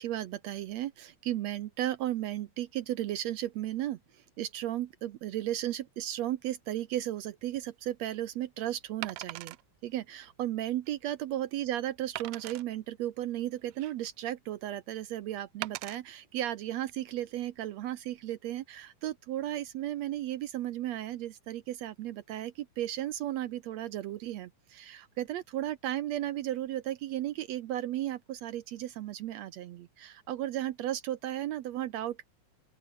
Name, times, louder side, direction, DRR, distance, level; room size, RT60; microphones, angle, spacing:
voice 1, 0.0-9.6 9.8-32.3, right 13 dB, 70° right, 1.8 m, -35 dB
Wood, 7.4-7.6 9.0-9.6 10.2-10.3 10.9-11.0 12.2-12.6 13.4-14.2 15.6-16.0 16.7-16.9, right 20 dB, 90° right, 2.1 m, -41 dB
open air
omnidirectional pair, 3.6 m